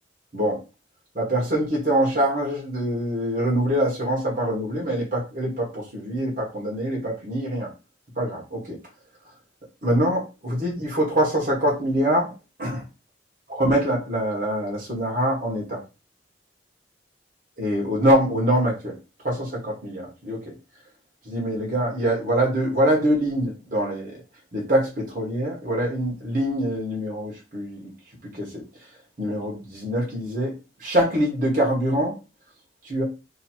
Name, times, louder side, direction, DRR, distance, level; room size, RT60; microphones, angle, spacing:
voice 1, 1.1-7.7 8.2-8.8 9.8-12.3 12.6-12.8 13.5-15.8 17.6-18.9 19.2-20.4 21.2-24.1 24.5-27.9 28.3-28.6 29.2-30.5 30.8-32.2 32.8-33.0, right 1 dB, 50° right, -3 dB, 1.4 m, -24 dB
3.0 x 2.9 x 4.4 m, 0.28 s
head